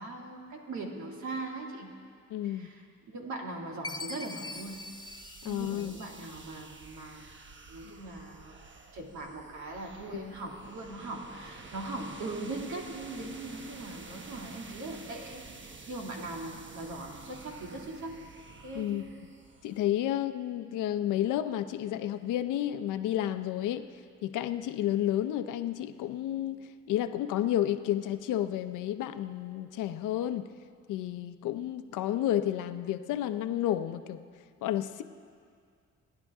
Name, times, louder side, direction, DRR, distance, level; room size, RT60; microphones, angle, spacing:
voice 1, 0.0-1.9 2.4-2.8 3.1-5.0 5.4-7.3 7.7-8.6 8.9-18.2 18.6-19.0, right 2 dB, 70° right, 0 dB, 2.5 m, -40 dB
voice 2, 2.3-2.7 5.4-6.0 10.1-10.3 18.7-19.0 19.6-23.9 24.2-26.6 26.9-30.5 30.9-34.2 34.6-35.0, left 12 dB, 90° left, 10 dB, 0.7 m, -31 dB
Chime, 3.8-6.4, left 3 dB, 15° left, 0.6 m, -42 dB
sound 1, 4.5-19.8, right 3 dB, 40° right, 1.4 m, -50 dB
27.0 x 10.5 x 3.6 m, 2.1 s
cardioid pair, 90°, 30 cm